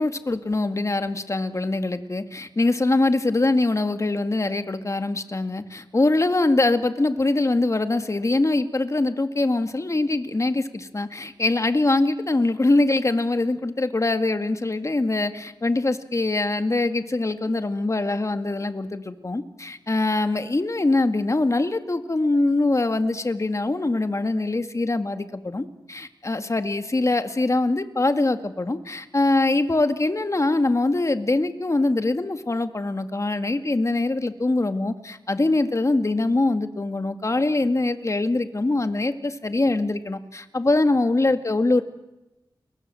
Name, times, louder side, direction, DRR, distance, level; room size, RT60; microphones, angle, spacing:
voice 1, 0.0-41.8, left 2 dB, 35° left, 8 dB, 2.1 m, -23 dB
29.5 x 23.0 x 7.8 m, 0.99 s
wide cardioid pair, 65°, 8 cm